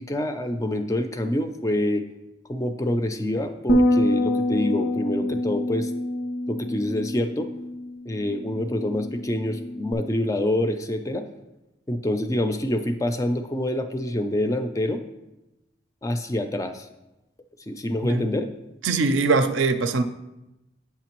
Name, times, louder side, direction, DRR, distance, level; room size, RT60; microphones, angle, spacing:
voice 1, 0.0-2.0 2.5-5.9 6.5-7.5 8.1-11.2 11.9-15.0 16.0-16.9 17.7-18.5, left 1 dB, 15° left, 8 dB, 0.3 m, -26 dB
Bass guitar, 3.7-9.9, left 1 dB, 85° left, 0.6 m, -26 dB
voice 2, 18.8-20.0, right 3 dB, 75° right, 9 dB, 0.5 m, -22 dB
8.5 x 5.8 x 3.0 m, 0.96 s
head